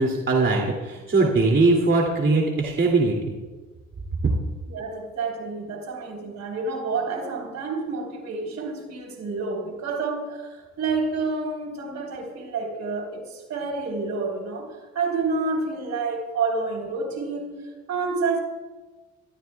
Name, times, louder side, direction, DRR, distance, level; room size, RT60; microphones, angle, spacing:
voice 1, 0.0-3.3, right 3 dB, 40° right, 2.6 m, -21 dB
voice 2, 4.7-18.4, right 4 dB, 65° right, 4.0 m, -29 dB
23.5 x 14.5 x 2.3 m
cardioid pair, 90°, 30 cm